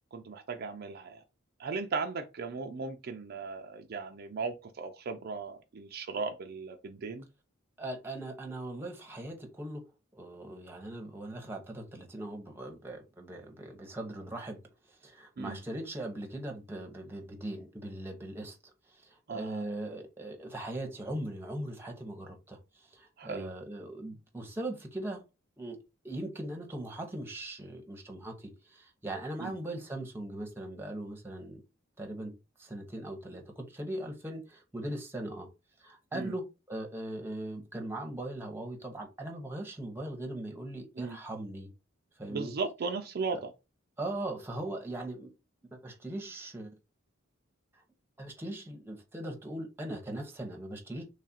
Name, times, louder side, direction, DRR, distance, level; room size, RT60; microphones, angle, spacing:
voice 1, 0.1-1.2 1.6-7.3 15.4-15.6 19.3-19.6 23.2-23.5 29.4-29.6 36.1-36.3 41.0-41.2 42.3-43.5, right 4 dB, 50° right, 0.4 m, -37 dB
voice 2, 7.8-9.8 10.1-14.6 15.0-18.6 18.9-25.2 25.6-25.8 26.0-31.6 32.0-32.3 32.6-35.5 35.8-41.7 42.2-42.5 43.3-43.4 44.0-45.3 45.8-46.7 48.2-51.0, right 1 dB, 10° right, 0.8 m, -40 dB
3.2 x 2.4 x 4.1 m
head